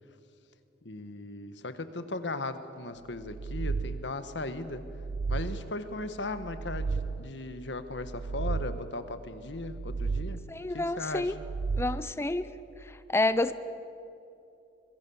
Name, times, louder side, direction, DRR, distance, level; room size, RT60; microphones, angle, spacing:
voice 1, 0.8-4.8 5.3-10.4 10.7-11.2, left 2 dB, 85° left, 10 dB, 1.5 m, -37 dB
sound 1, 3.2-4.3 4.8-5.9 6.4-7.5 8.0-9.1 9.6-10.6 11.2-12.3, right 4 dB, 50° right, 0.5 m, -34 dB
voice 2, 10.5-11.3 11.8-12.5 12.8-13.5, left 2 dB, 15° left, 13 dB, 0.5 m, -29 dB
25.0 x 22.0 x 7.2 m, 2.7 s
head